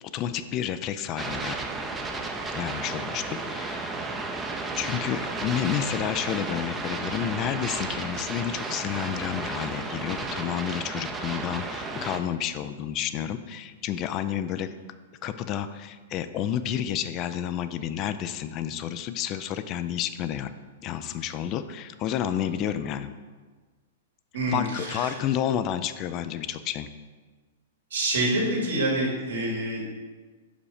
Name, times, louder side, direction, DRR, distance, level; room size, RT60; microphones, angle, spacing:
voice 1, 0.0-1.6 2.5-4.0 4.8-14.8 15.2-20.5 20.8-23.1 24.5-26.9, left 10 dB, 35° left, 11 dB, 0.4 m, -30 dB
sound 1, 1.2-12.2, right 3 dB, 15° right, 0.6 m, -33 dB
voice 2, 24.3-25.1 27.9-29.8, right 1 dB, 85° right, -2 dB, 2.2 m, -27 dB
5.4 x 5.0 x 4.9 m, 1.4 s
hypercardioid pair, 130°, 0 cm